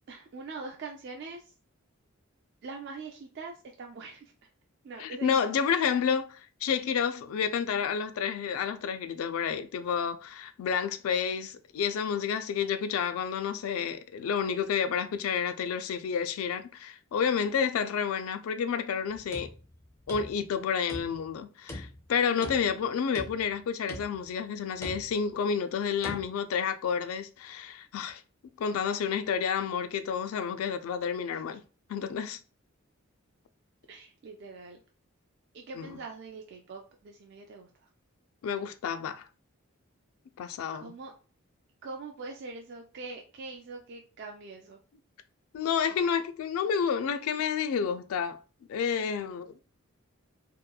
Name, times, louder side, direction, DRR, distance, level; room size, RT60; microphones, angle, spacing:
voice 1, 0.1-1.5 2.6-4.5 4.8-5.8 22.3-22.7 31.3-31.4 33.9-34.8 35.5-37.7 40.7-41.1 41.8-44.8, right 3 dB, 50° right, 0.3 m, -43 dB
voice 2, 5.0-19.5 20.1-28.2 28.6-31.6 31.9-32.4 35.8-36.0 38.4-39.2 40.4-40.9 45.5-48.4 48.7-49.6, left 7 dB, 80° left, 0.3 m, -30 dB
sound 1, 19.1-20.6 20.9-21.4 21.7-22.8 23.1-23.6 23.9-24.3 24.8-25.3 26.0-26.3, left 1 dB, 15° left, 0.5 m, -42 dB
2.9 x 2.2 x 2.2 m
head